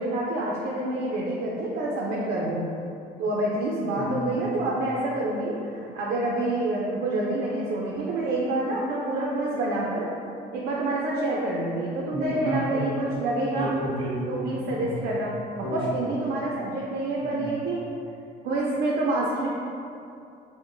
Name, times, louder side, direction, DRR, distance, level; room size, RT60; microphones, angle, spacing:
voice 1, 0.0-2.6 3.2-10.1 10.5-13.7 14.3-17.8 18.4-19.5, right 2 dB, 65° right, -4 dB, 0.5 m, -27 dB
voice 2, 4.0-4.4 12.1-13.0 13.5-15.0 15.6-15.8 17.2-17.5, right 1 dB, 30° right, -5 dB, 0.9 m, -31 dB
4.3 x 2.1 x 2.6 m, 2.6 s
cardioid pair, 110°, 17 cm